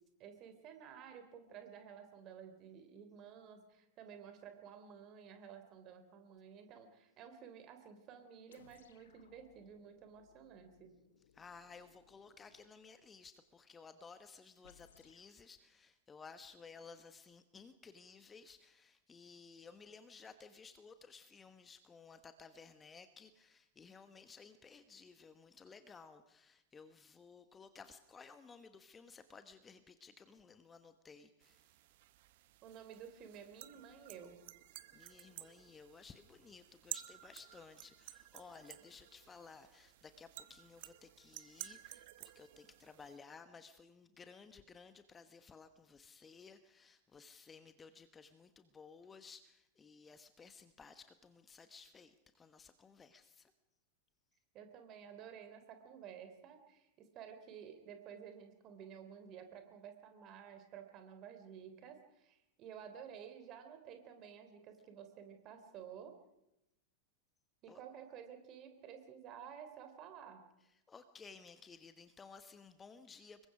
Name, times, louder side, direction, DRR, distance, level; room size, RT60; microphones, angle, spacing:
voice 1, 0.2-10.9 32.6-34.4 54.5-66.1 67.6-70.4, right 8 dB, 35° right, 7 dB, 3.5 m, -53 dB
sound 1, 8.5-12.8 14.6-15.3, left 8 dB, 65° left, 1.3 m, -67 dB
voice 2, 11.3-31.6 34.9-53.5 67.7-67.8 70.9-73.5, left 5 dB, 15° left, 11 dB, 1.2 m, -57 dB
sound 2, 31.4-43.2, right 15 dB, 50° right, 1.0 m, -53 dB
26.0 x 22.0 x 5.1 m, 0.86 s
figure-of-eight pair, 90°, 0 cm